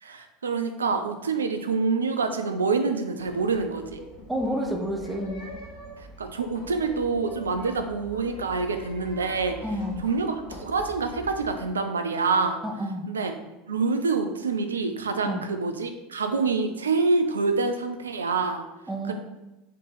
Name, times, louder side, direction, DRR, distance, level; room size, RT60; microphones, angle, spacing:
voice 1, 0.0-4.0 6.2-9.6 10.0-12.6 13.1-13.3 13.7-18.6 19.1-19.2, right 4 dB, 80° right, 7 dB, 0.4 m, -26 dB
sound 1, 3.2-11.6, left 1 dB, 70° left, 1.4 m, -43 dB
voice 2, 4.3-5.5 9.6-10.0 12.6-13.0 15.2-15.4 18.9-19.1, equal, 10° right, 2 dB, 0.7 m, -29 dB
4.5 x 3.0 x 3.9 m, 1.0 s
figure-of-eight pair, 75°, 0 cm